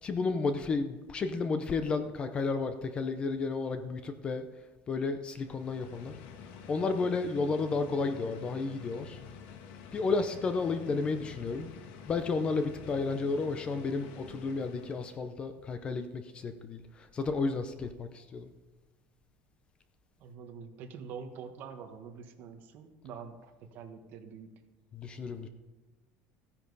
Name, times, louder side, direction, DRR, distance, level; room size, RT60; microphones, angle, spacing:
voice 1, 0.0-4.4 4.9-6.1 6.6-9.2 9.9-11.7 12.0-18.5 24.9-25.5, left 4 dB, 20° left, 9 dB, 0.6 m, -32 dB
sound 1, 5.3-15.3, left 6 dB, 70° left, 1.6 m, -49 dB
voice 2, 20.2-24.5, right 6 dB, 40° right, 6 dB, 1.2 m, -45 dB
14.5 x 10.0 x 4.1 m, 1.2 s
cardioid pair, 180°, 5 cm